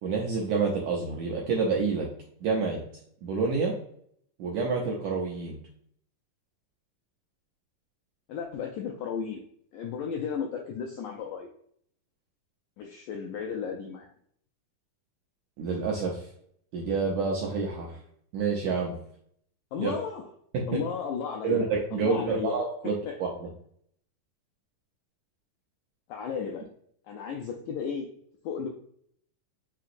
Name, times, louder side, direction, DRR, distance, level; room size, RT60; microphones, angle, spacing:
voice 1, 0.0-2.1 2.4-2.8 3.2-3.7 4.4-5.6 15.6-16.2 16.7-18.0 18.3-18.9 19.8-19.9 20.5-20.8 21.4-23.3, right 4 dB, 80° right, -2 dB, 1.7 m, -28 dB
voice 2, 8.3-9.4 9.7-11.5 12.8-14.1 19.7-20.3 20.7-21.6 21.9-22.6 22.8-23.2 26.1-26.7 27.1-28.1 28.4-28.7, left 6 dB, 85° left, 2 dB, 1.7 m, -34 dB
5.7 x 2.9 x 2.5 m, 0.66 s
omnidirectional pair, 3.9 m